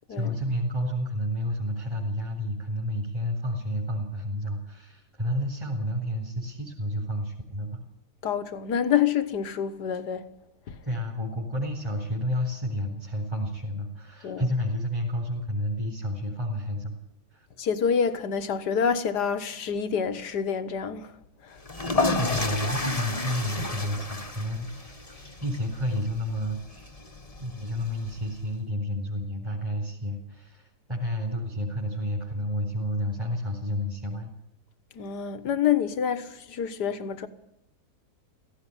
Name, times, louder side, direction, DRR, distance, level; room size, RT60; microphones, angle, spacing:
voice 1, 0.1-7.8 10.8-16.9 17.3-17.5 22.1-26.9 27.4-34.3, equal, 15° right, 4.0 m, -30 dB
voice 2, 8.2-10.3 10.7-10.8 14.2-14.5 17.6-21.1 21.4-21.6 34.9-37.3, left 7 dB, 80° left, 1.9 m, -27 dB
sound 1, 21.6-28.4, left 3 dB, 25° left, 1.6 m, -32 dB
16.5 x 16.5 x 9.9 m
omnidirectional pair, 1.7 m